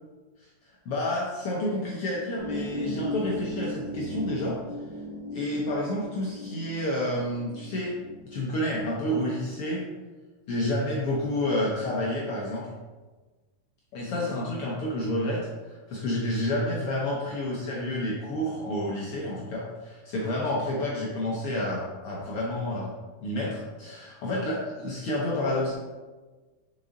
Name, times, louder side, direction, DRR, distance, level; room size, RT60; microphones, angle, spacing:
voice 1, 0.8-4.6 5.3-7.9 8.2-9.8 10.5-12.7 13.9-22.9 23.2-25.7, left 1 dB, 80° left, -4 dB, 1.2 m, -29 dB
sound 1, 2.4-9.3, left 1 dB, 45° right, 2.1 m, -37 dB
5.5 x 5.1 x 3.9 m, 1.3 s
omnidirectional pair, 3.8 m